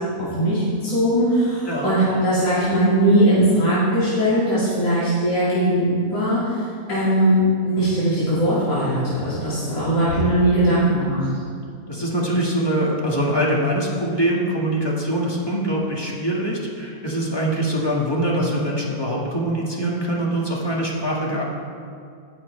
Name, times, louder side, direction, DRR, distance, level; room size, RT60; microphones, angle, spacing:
voice 1, 0.0-7.4 7.6-11.3, right 1 dB, 60° left, -11 dB, 2.6 m, -20 dB
voice 2, 11.9-21.4, right 1 dB, 15° left, -4 dB, 1.5 m, -23 dB
17.5 x 6.7 x 3.2 m, 2.3 s
omnidirectional pair, 1.6 m